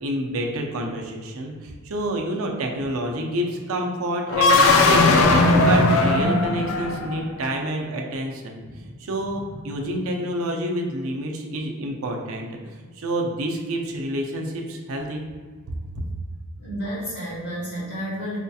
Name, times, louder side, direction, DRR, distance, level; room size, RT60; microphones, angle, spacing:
voice 1, 0.0-5.2 5.6-8.6 9.0-15.2, right 1 dB, 70° right, 1 dB, 0.5 m, -28 dB
sound 1, 4.3-7.3, left 2 dB, 65° left, 0.4 m, -17 dB
voice 2, 16.6-18.4, equal, 50° left, -8 dB, 1.4 m, -31 dB
4.2 x 2.7 x 2.3 m, 1.5 s
head